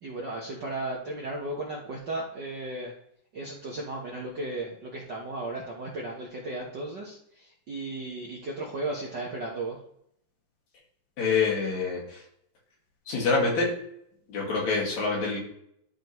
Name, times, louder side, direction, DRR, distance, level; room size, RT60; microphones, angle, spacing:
voice 1, 0.0-2.9 3.3-9.8, right 2 dB, 55° right, -3 dB, 1.2 m, -35 dB
voice 2, 11.2-12.2 13.1-13.7 14.3-15.4, left 4 dB, 70° left, -3 dB, 3.5 m, -26 dB
12.5 x 5.5 x 3.1 m, 0.73 s
omnidirectional pair, 3.4 m